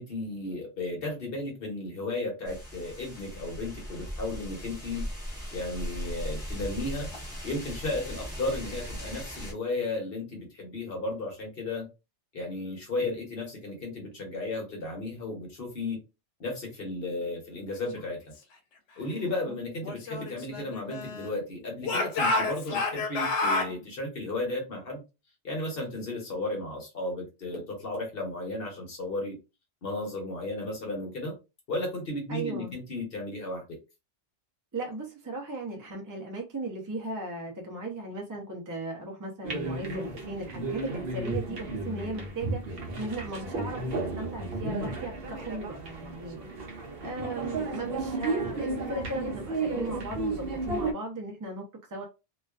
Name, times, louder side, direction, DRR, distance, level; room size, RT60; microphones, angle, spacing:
voice 1, 0.0-5.0 5.5-7.1 7.4-11.9 12.3-16.0 16.4-18.2 19.0-25.0 25.4-29.3 29.8-31.3 31.7-33.8, left 2 dB, 55° left, 1.0 m, -34 dB
sound 1, 2.4-9.5, equal, 5° right, 1.0 m, -38 dB
Speech / Shout, 19.8-21.4 21.8-23.7, left 2 dB, 90° left, 0.9 m, -29 dB
voice 2, 32.3-32.8 34.7-46.8 47.0-52.0, right 2 dB, 30° right, 0.3 m, -37 dB
sound 2, 39.4-50.9, right 3 dB, 60° right, 0.8 m, -33 dB
2.4 x 2.3 x 2.3 m
omnidirectional pair, 1.2 m